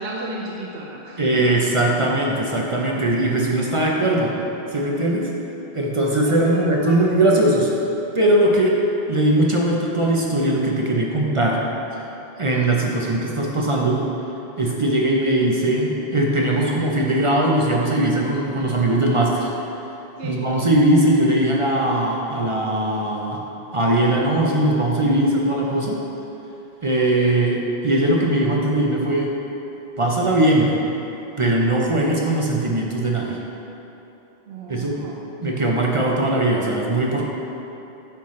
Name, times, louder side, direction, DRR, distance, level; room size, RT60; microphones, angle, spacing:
voice 1, 0.0-1.6 6.3-7.1 20.2-20.4 34.5-35.2, right 2 dB, 65° right, -2 dB, 0.9 m, -33 dB
voice 2, 1.2-4.4 4.7-5.3 5.7-7.7 8.1-8.8 9.1-11.6 12.4-14.1 14.6-19.5 20.2-23.4 23.7-26.0 26.8-29.3 30.0-30.8 31.4-33.4 34.7-35.0 35.4-37.3, right 1 dB, 35° right, -2 dB, 0.6 m, -20 dB
8.8 x 5.5 x 3.2 m, 3.0 s
omnidirectional pair, 1.1 m